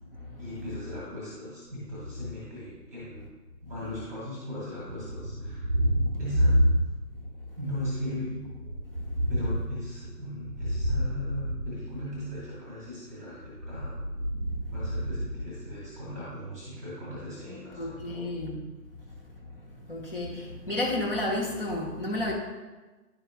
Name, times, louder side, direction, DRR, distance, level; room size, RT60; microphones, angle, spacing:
voice 1, 0.4-3.3 3.6-5.6 6.2-6.6 7.6-8.4 9.3-14.0 14.7-18.3, left 1 dB, 10° right, -7 dB, 1.2 m, -38 dB
Thunder, 4.9-7.3 7.6-12.4 13.5-16.1, equal, 35° right, 0.7 m, -29 dB
voice 2, 17.8-18.6 19.9-22.3, left 1 dB, 35° left, -3 dB, 1.1 m, -31 dB
10.0 x 5.0 x 2.3 m, 1.2 s
figure-of-eight pair, 150°, 48 cm